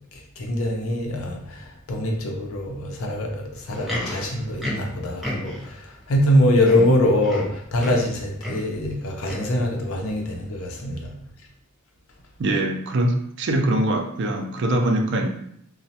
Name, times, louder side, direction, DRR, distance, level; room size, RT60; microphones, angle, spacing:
voice 1, 0.4-11.1, left 1 dB, 90° left, 0.6 m, -23 dB
Livestock farm animals working animals, 3.5-5.8 6.3-6.4 6.6-8.1 8.4-8.7 9.2-9.6 10.3-10.4, equal, ahead, 0.6 m, -32 dB
voice 2, 12.4-15.3, right 1 dB, 60° right, 0.4 m, -23 dB
3.0 x 2.1 x 2.7 m
head